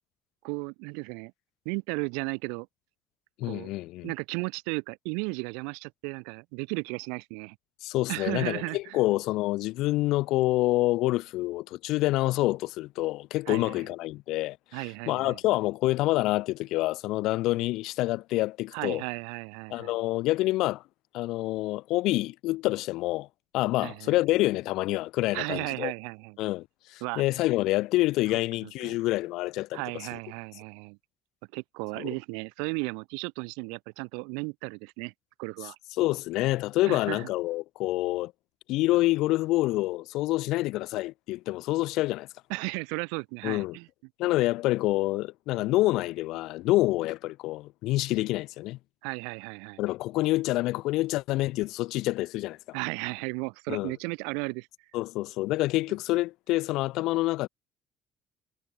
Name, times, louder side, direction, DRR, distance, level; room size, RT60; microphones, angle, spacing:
voice 1, 0.4-1.3 1.6-2.7 3.4-3.7 4.0-7.6 8.1-9.0 13.5-13.8 14.7-15.4 18.7-19.9 23.8-24.1 25.3-26.4 27.0-27.2 28.6-29.0 29.7-31.0 31.5-35.1 35.4-35.8 36.8-37.3 42.5-43.9 49.0-49.8 52.7-54.7, right 37 dB, 65° right, 0.6 m, -35 dB
voice 2, 3.4-4.1 7.8-19.0 19.7-20.8 21.1-23.3 23.5-25.9 26.4-29.8 32.0-32.1 36.0-38.3 38.7-42.3 43.4-43.8 44.2-48.8 49.8-52.6 53.7-53.9 54.9-57.5, left 18 dB, 60° left, 0.5 m, -27 dB
figure-of-eight pair, 50°, 0 cm